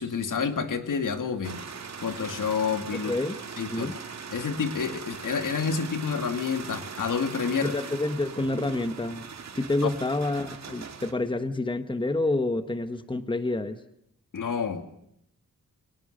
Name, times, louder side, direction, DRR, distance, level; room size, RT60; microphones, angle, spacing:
voice 1, 0.0-1.6 2.0-3.1 3.6-3.9 4.3-7.7 9.8-9.9 14.3-14.8, left 6 dB, 75° left, 8 dB, 2.4 m, -29 dB
sound 1, 1.4-11.1, right 6 dB, 55° right, 2.1 m, -40 dB
voice 2, 3.0-3.4 3.7-4.0 7.6-9.3 9.5-13.8, left 2 dB, 15° left, 10 dB, 1.3 m, -28 dB
29.0 x 23.5 x 6.7 m, 0.77 s
wide cardioid pair, 175°, 32 cm